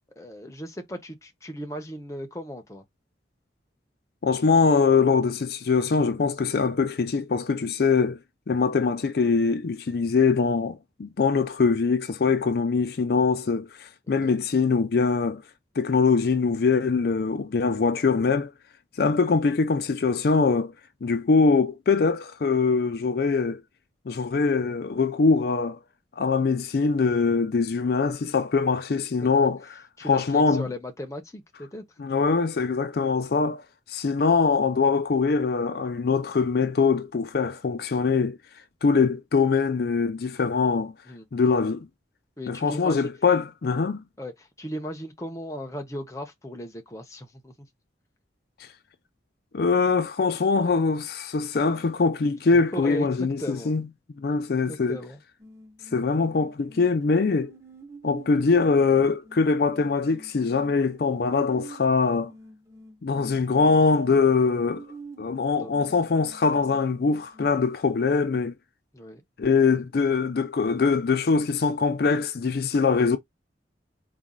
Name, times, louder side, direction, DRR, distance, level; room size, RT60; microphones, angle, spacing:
voice 1, 0.2-2.8 14.1-14.4 19.2-19.3 29.2-29.5 30.0-31.9 41.1-41.3 42.4-43.1 44.2-47.7 52.5-53.7 54.7-55.2 65.6-65.7 68.9-69.2, equal, 15° left, 0.7 m, -36 dB
voice 2, 4.2-8.2 8.5-15.4 15.8-18.5 19.0-20.7 21.0-23.6 24.1-25.8 26.2-29.7 30.1-30.7 32.0-33.6 33.9-38.4 38.8-40.9 41.3-41.9 42.5-44.0 49.5-53.9 54.2-55.0 55.9-57.5 58.0-62.3 63.0-64.8 65.2-68.5 69.4-73.2, left 4 dB, 55° left, 0.4 m, -23 dB
sound 1, 55.4-67.5, right 2 dB, 15° right, 0.8 m, -48 dB
4.1 x 2.3 x 3.7 m
head